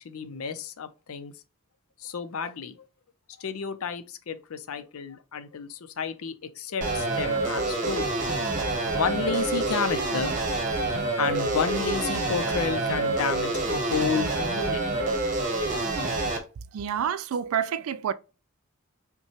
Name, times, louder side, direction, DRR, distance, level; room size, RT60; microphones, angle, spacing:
voice 1, 0.0-1.3 2.0-2.7 3.4-8.0 8.9-10.3 11.2-14.8, left 5 dB, 80° left, 0.5 m, -31 dB
sound 1, 6.8-16.4, right 2 dB, 35° right, 0.9 m, -27 dB
voice 2, 16.7-18.1, right 8 dB, 75° right, 0.3 m, -28 dB
5.5 x 2.2 x 2.9 m
head